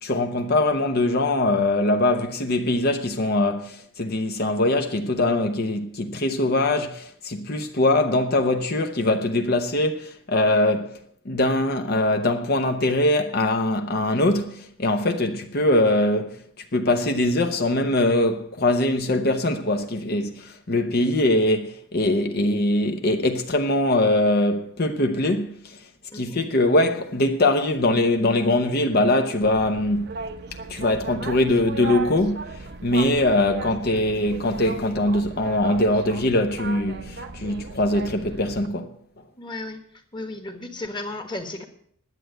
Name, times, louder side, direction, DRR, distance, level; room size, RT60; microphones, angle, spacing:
voice 1, 0.0-11.0 11.2-16.4 16.7-25.8 26.1-30.2 30.7-39.0, left 1 dB, 50° left, 0.9 m, -22 dB
Boat Water vehicle, 29.4-38.7, right 3 dB, 55° right, 0.8 m, -36 dB
voice 2, 39.4-39.8 40.1-41.6, left 2 dB, 25° left, 1.4 m, -34 dB
11.0 x 7.9 x 7.8 m
head